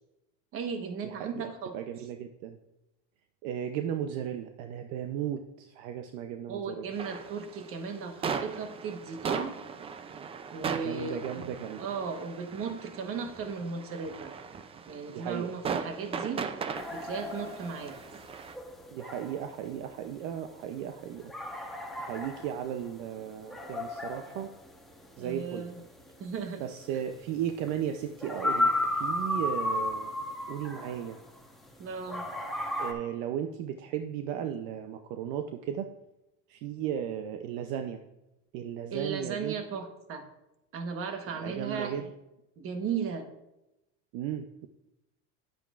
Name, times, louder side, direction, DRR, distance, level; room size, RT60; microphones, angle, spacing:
voice 1, 0.5-1.7 6.5-9.6 10.5-11.5 11.8-14.4 14.9-16.5 16.9-18.0 25.2-25.8 26.2-26.6 31.8-32.3 38.9-40.2 40.7-42.1 42.6-43.3, right 5 dB, 40° right, 6 dB, 1.2 m, -36 dB
voice 2, 1.0-2.6 3.4-6.8 10.7-11.9 15.1-15.5 18.9-21.3 22.0-24.5 25.2-25.6 26.6-30.1 30.5-31.2 32.8-35.9 36.5-38.0 38.5-39.5 41.4-42.1 44.1-44.7, right 9 dB, 65° right, 7 dB, 0.7 m, -35 dB
sound 1, 6.9-18.5, right 6 dB, 20° right, 0.4 m, -38 dB
sound 2, 16.7-31.7 32.1-32.9, left 1 dB, ahead, 1.1 m, -34 dB
10.0 x 8.9 x 2.5 m, 0.92 s
supercardioid pair, 140°, 33 cm